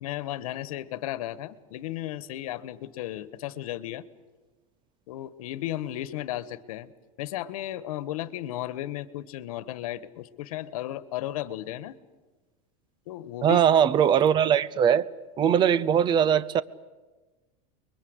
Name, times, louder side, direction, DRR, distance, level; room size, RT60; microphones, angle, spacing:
voice 1, 0.0-4.0 5.1-6.9 7.2-12.0 13.1-13.6 15.5-15.6, left 13 dB, 75° left, 1.5 m, -34 dB
voice 2, 13.4-15.0 15.4-16.6, right 8 dB, 25° right, 0.8 m, -21 dB
29.5 x 22.5 x 8.2 m
supercardioid pair, 150°, 18 cm